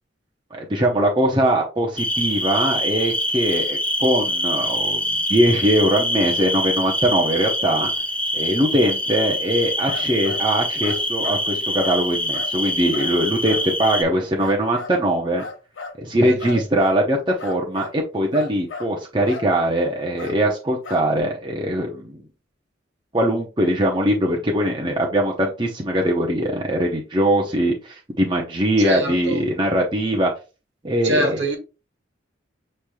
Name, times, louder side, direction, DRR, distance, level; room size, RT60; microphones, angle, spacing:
voice 1, 0.5-5.0 5.3-7.9 8.3-15.4 16.0-22.2 23.1-30.3 30.8-31.5, right 1 dB, 25° right, 0.8 m, -21 dB
sound 1, 2.0-14.0, left 1 dB, 5° left, 0.5 m, -24 dB
sound 2, 9.9-10.5 10.8-11.5 11.8-12.0 12.3-12.6 12.9-13.1 13.5-14.0 14.4-15.0 15.4-16.0 16.4-17.0 17.4-18.0 18.3-18.9 19.3-19.5 20.2-20.4 20.8-21.2, left 3 dB, 75° left, 0.9 m, -35 dB
voice 2, 16.2-16.6 28.8-29.4 31.0-31.6, right 2 dB, 60° right, 1.4 m, -25 dB
7.2 x 3.2 x 2.3 m
head